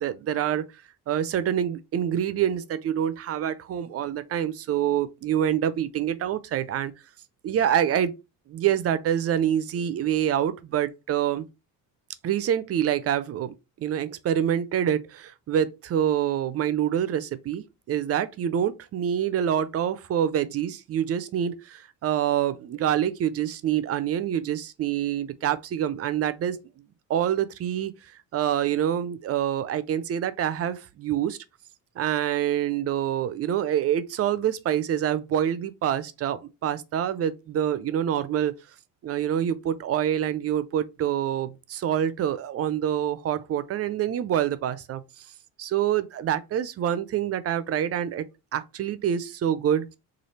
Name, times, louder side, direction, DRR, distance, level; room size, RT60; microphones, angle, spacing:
voice 1, 0.0-6.9 7.4-8.2 8.5-11.5 12.2-26.6 27.1-31.4 32.0-38.5 39.0-45.3 45.6-48.3 48.5-49.9, right 10 dB, 40° right, 0.4 m, -26 dB
3.1 x 2.4 x 4.2 m
cardioid pair, 105°, 36 cm